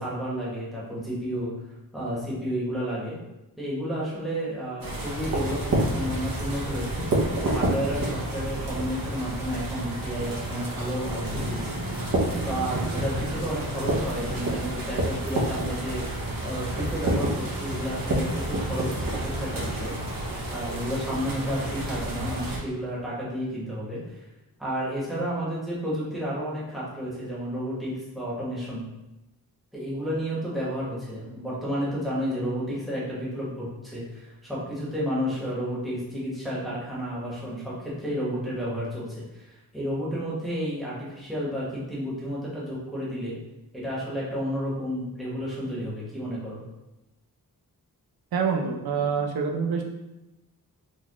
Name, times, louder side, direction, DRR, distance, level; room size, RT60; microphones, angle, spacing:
voice 1, 0.0-1.5 1.9-3.2 3.6-7.1 7.4-12.0 12.4-20.0 20.5-24.3 24.6-28.8 29.7-43.4 43.7-46.6, equal, ahead, -8 dB, 1.0 m, -31 dB
sound 1, 4.8-22.6, right 1 dB, 65° right, 0.9 m, -29 dB
voice 2, 48.3-49.8, right 5 dB, 85° right, 2 dB, 0.5 m, -26 dB
4.3 x 2.3 x 3.0 m, 0.97 s
wide cardioid pair, 180°, 36 cm